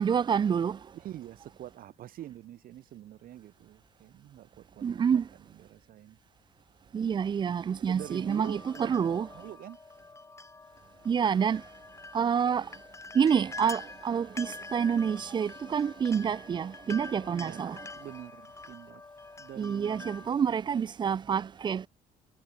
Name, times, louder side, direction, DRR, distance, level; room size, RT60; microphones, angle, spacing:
voice 1, 0.0-0.8 4.8-5.3 6.9-9.3 11.1-11.6 12.1-12.7 13.1-17.8 19.6-21.9, right 7 dB, 25° right, 0.4 m, -28 dB
voice 2, 0.9-6.2 7.6-9.8 17.3-17.6 18.0-19.0 19.4-20.4, right 12 dB, 60° right, 0.8 m, -46 dB
sound 1, 8.0-20.3, left 3 dB, 15° left, 2.5 m, -46 dB
cardioid pair, 110°, 17 cm